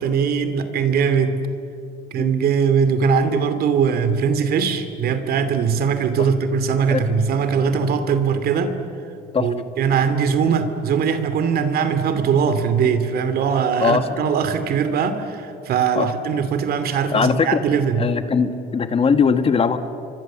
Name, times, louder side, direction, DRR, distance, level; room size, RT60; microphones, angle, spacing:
voice 1, 0.0-1.4 2.1-8.8 9.4-18.1, right 6 dB, 65° right, 9 dB, 2.5 m, -20 dB
voice 2, 17.1-17.6 18.0-19.8, left 5 dB, 35° left, 10 dB, 1.5 m, -20 dB
29.5 x 24.5 x 7.4 m, 2.9 s
cardioid pair, 110°, 17 cm